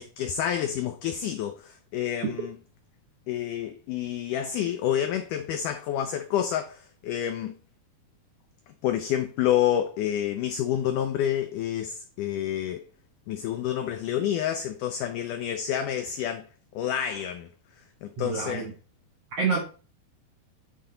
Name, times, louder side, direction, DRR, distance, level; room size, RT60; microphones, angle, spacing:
voice 1, 0.0-2.6 3.3-7.6 8.8-12.8 13.3-16.5 16.7-17.5 18.0-18.7, left 10 dB, 85° left, 1.8 m, -28 dB
voice 2, 18.2-18.7 19.4-19.6, right 4 dB, 70° right, 1.4 m, -27 dB
10.0 x 4.3 x 3.8 m
omnidirectional pair, 4.4 m